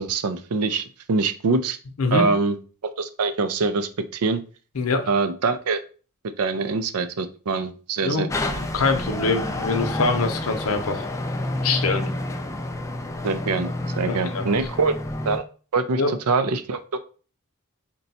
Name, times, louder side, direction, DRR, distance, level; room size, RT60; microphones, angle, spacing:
voice 1, 0.0-1.8 2.1-2.6 2.8-4.4 5.1-5.8 6.2-8.3 13.2-13.7 14.0-15.0 15.3-15.4 15.7-16.0 16.3-17.0, right 4 dB, 85° right, 10 dB, 0.5 m, -24 dB
voice 2, 4.7-5.1 8.0-8.3 8.7-11.1 11.6-12.1 14.1-14.5 16.0-16.1, left 3 dB, 65° left, 6 dB, 0.7 m, -24 dB
sound 1, 8.3-15.4, left 1 dB, 15° left, 0.3 m, -29 dB
3.9 x 2.3 x 4.1 m, 0.38 s
head